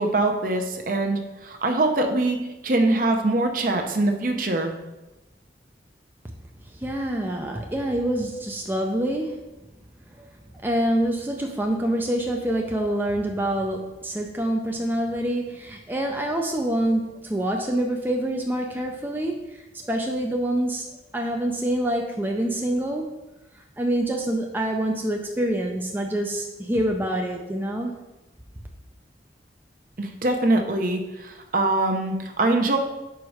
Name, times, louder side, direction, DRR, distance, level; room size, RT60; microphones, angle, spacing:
voice 1, 0.0-2.4 2.6-4.7 30.0-32.8, right 2 dB, 50° right, 4 dB, 0.7 m, -23 dB
voice 2, 6.6-9.4 10.2-10.4 10.6-23.1 23.5-28.0, right 1 dB, 10° right, 1 dB, 0.4 m, -26 dB
5.2 x 4.7 x 4.8 m, 1.0 s
head